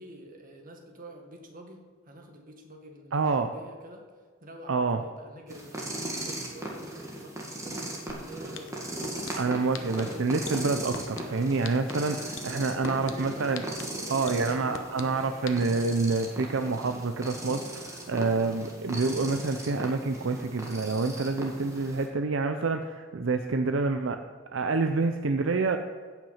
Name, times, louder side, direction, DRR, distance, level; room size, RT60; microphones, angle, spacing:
voice 1, 0.0-4.1 4.4-7.9 8.3-8.7 12.5-13.5 13.9-15.4, equal, 45° right, 2 dB, 1.8 m, -47 dB
voice 2, 3.1-3.5 4.7-5.0 9.3-13.6 14.1-24.2 24.5-25.8, right 3 dB, 70° right, 7 dB, 0.6 m, -27 dB
sound 1, 5.5-22.1, right 1 dB, 15° right, 1.8 m, -38 dB
sound 2, 8.1-8.2 8.5-9.3 9.7-10.0 10.4-11.2 11.6-11.9 12.4-13.1 13.5-13.8 14.3-15.0 15.5-15.6, left 7 dB, 65° left, 1.0 m, -38 dB
16.0 x 6.0 x 5.7 m, 1.5 s
head